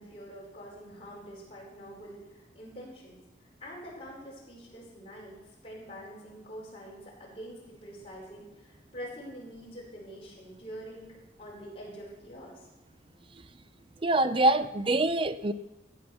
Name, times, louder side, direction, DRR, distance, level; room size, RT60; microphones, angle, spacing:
voice 1, 0.0-5.4 5.6-11.1 11.4-12.7, equal, 30° left, -4 dB, 5.2 m, -45 dB
voice 2, 14.0-15.5, right 2 dB, 30° right, 12 dB, 0.5 m, -25 dB
14.5 x 8.8 x 6.2 m, 1.0 s
head